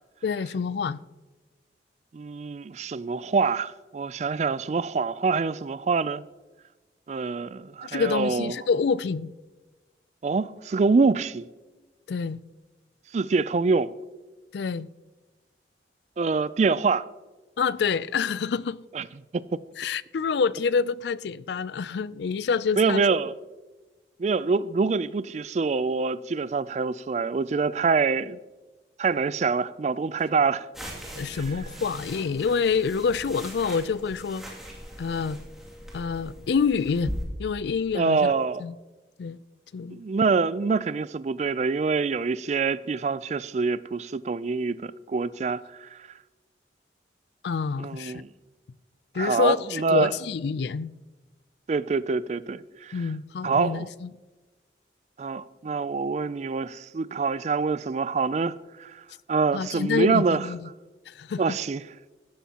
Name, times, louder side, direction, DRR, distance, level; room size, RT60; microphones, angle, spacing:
voice 1, 0.2-1.0 7.8-9.3 12.1-12.4 14.5-14.9 17.6-18.8 19.8-23.1 31.2-34.4 35.0-35.4 35.9-37.1 37.4-38.3 38.6-38.7 39.2-39.4 39.7-40.0 47.4-48.2 49.1-50.9 52.9-54.1 59.5-60.7 61.1-61.6, left 5 dB, 65° left, 0.4 m, -27 dB
voice 2, 2.1-6.2 7.1-8.6 10.2-11.5 13.1-13.9 16.2-17.0 18.9-19.0 19.3-19.6 22.8-23.3 24.2-28.4 29.0-30.7 31.3-31.4 37.9-38.6 39.9-46.0 47.8-48.3 49.1-50.1 51.7-53.0 53.4-53.9 55.2-58.5 58.8-60.5 61.4-61.8, right 4 dB, 40° right, 0.3 m, -25 dB
sound 1, 30.7-37.2, equal, ahead, 2.4 m, -40 dB
16.0 x 12.5 x 2.9 m
head